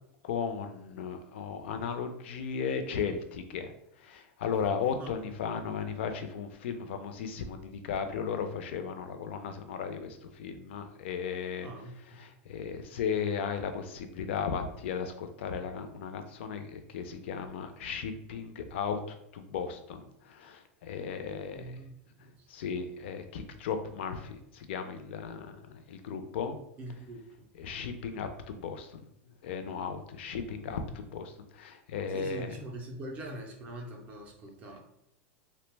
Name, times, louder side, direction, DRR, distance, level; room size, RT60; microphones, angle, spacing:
voice 1, 0.2-3.7 4.0-11.7 12.1-21.6 22.5-26.6 27.6-29.1 29.4-32.5, left 6 dB, 65° left, 8 dB, 0.4 m, -36 dB
voice 2, 11.6-12.2 21.3-22.5 26.8-27.5 30.7-30.8 32.1-34.8, right 1 dB, 20° right, 0 dB, 0.4 m, -43 dB
2.8 x 2.1 x 3.2 m, 0.78 s
supercardioid pair, 175°, 7 cm